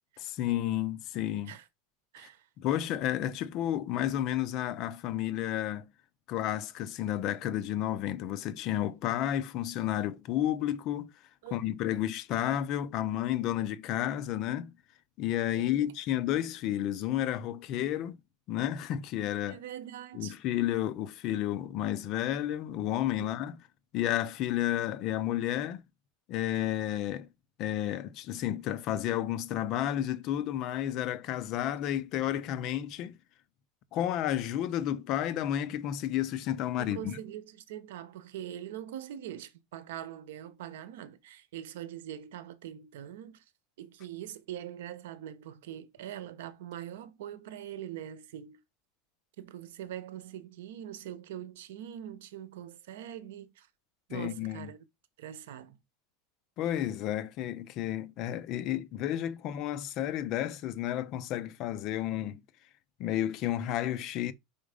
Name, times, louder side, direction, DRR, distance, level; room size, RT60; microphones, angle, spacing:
voice 1, 0.2-1.5 2.2-2.3 2.6-5.9 6.3-11.1 11.5-14.8 15.2-18.2 18.5-19.6 20.1-23.6 23.9-25.8 26.3-27.3 27.6-33.2 33.9-37.2 54.1-54.7 56.6-62.4 63.0-64.3, left 12 dB, 35° left, 0.5 m, -31 dB
voice 2, 15.5-15.9 19.5-20.3 23.2-23.4 36.8-43.4 43.8-48.6 49.4-53.7 54.1-54.8 55.2-55.8, right 11 dB, 80° right, 1.0 m, -43 dB
5.2 x 4.8 x 5.0 m
supercardioid pair, 180°, 0 cm